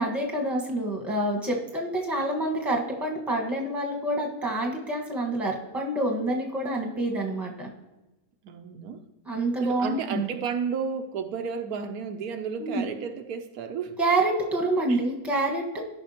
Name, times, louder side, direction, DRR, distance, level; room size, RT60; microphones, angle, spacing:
voice 1, 0.0-7.7 9.3-10.3 12.6-12.8 14.0-15.8, right 1 dB, ahead, 0 dB, 1.1 m, -27 dB
voice 2, 8.4-9.0 9.6-14.0 14.9-15.0, right 6 dB, 80° right, 7 dB, 1.1 m, -32 dB
13.5 x 5.6 x 2.8 m, 1.0 s
omnidirectional pair, 1.6 m